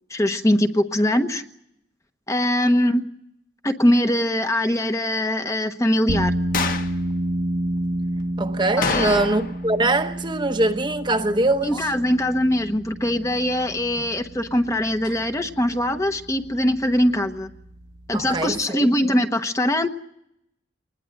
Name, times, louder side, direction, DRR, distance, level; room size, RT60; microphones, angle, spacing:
voice 1, 0.1-1.4 2.3-3.1 3.6-6.3 8.8-9.2 11.6-17.5 18.1-19.9, left 1 dB, 15° left, 1.1 m, -22 dB
sound 1, 6.1-18.6, right 1 dB, 70° right, 1.6 m, -31 dB
sound 2, 6.5-7.0 8.8-9.7 9.9-10.0 15.0-15.2, left 4 dB, 50° left, 1.5 m, -26 dB
voice 2, 8.4-11.8 18.1-18.9, right 2 dB, 25° right, 1.0 m, -22 dB
25.0 x 20.0 x 9.2 m
head